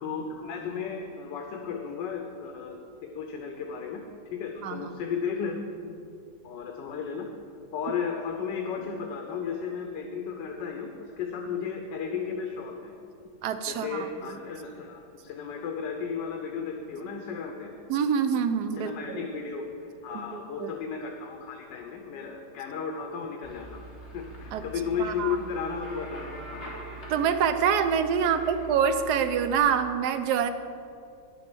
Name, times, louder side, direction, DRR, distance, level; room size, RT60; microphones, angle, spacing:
voice 1, 0.0-2.8 3.0-4.0 4.3-6.0 6.4-7.3 7.7-12.9 13.7-17.7 18.7-23.8 24.1-26.7 28.2-28.5, left 6 dB, 85° left, 3 dB, 1.5 m, -34 dB
voice 2, 13.4-14.3 17.9-19.2 20.1-20.7 24.5-24.6 25.0-25.4 27.1-30.5, right 7 dB, 70° right, 8 dB, 1.2 m, -26 dB
sound 1, 23.4-29.6, right 1 dB, 40° left, 2.5 m, -43 dB
9.9 x 7.6 x 6.1 m, 2.5 s
omnidirectional pair, 1.9 m